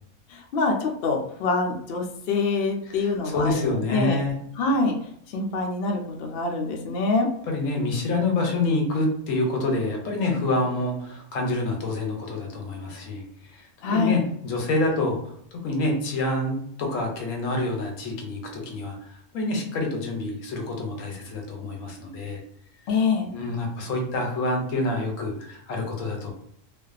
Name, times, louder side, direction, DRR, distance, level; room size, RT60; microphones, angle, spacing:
voice 1, 0.3-4.2 4.6-4.9 5.3-7.3 13.8-14.2 22.9-23.3, left 3 dB, 65° left, 1 dB, 0.6 m, -25 dB
voice 2, 3.0-4.3 7.5-13.2 13.5-15.2 15.5-19.0 19.3-22.4 23.3-26.3, left 2 dB, 80° left, 1 dB, 1.0 m, -27 dB
2.5 x 2.3 x 2.3 m, 0.71 s
omnidirectional pair, 1.4 m